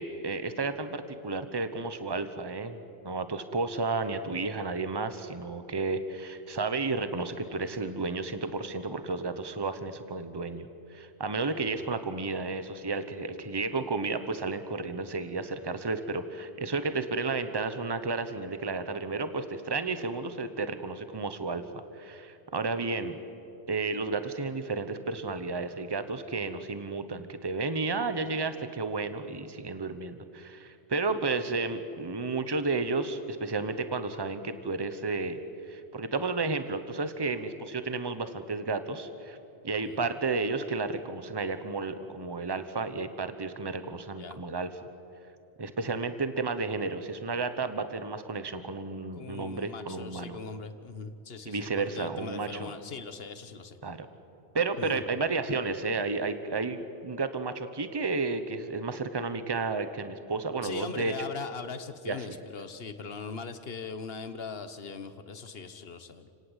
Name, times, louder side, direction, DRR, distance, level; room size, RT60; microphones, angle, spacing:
voice 1, 0.0-2.8 3.0-21.6 21.9-23.2 23.7-35.4 35.7-39.4 39.6-44.7 45.6-50.4 51.4-52.7 53.8-54.1 54.5-61.1 62.1-62.4, right 3 dB, 25° right, 10 dB, 1.1 m, -32 dB
voice 2, 49.1-53.8 54.8-55.0 60.6-66.3, left 5 dB, 65° left, 11 dB, 1.4 m, -40 dB
29.5 x 18.0 x 8.2 m, 2.8 s
omnidirectional pair, 1.1 m